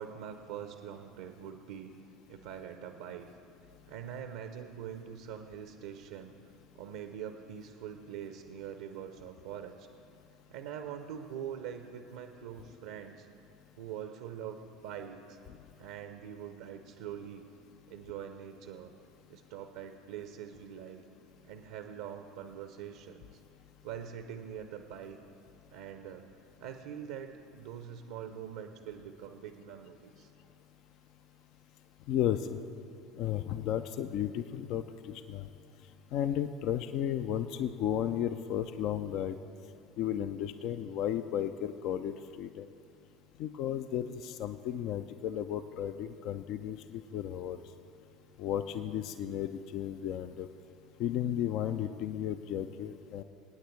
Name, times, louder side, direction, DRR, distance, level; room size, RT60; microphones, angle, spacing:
voice 1, 0.0-1.9 2.3-3.3 3.9-9.9 10.5-13.3 13.8-15.4 15.8-17.5 17.9-18.9 19.3-21.0 21.4-23.4 23.8-25.2 25.7-26.3 26.6-30.3, right 9 dB, 65° right, 7 dB, 0.6 m, -44 dB
voice 2, 32.1-32.6 33.2-35.5 36.1-39.4 40.0-42.7 43.4-47.6 48.4-50.5 51.0-53.2, left 10 dB, 50° left, 11 dB, 0.4 m, -34 dB
26.0 x 9.3 x 3.1 m, 2.5 s
figure-of-eight pair, 70°, 0 cm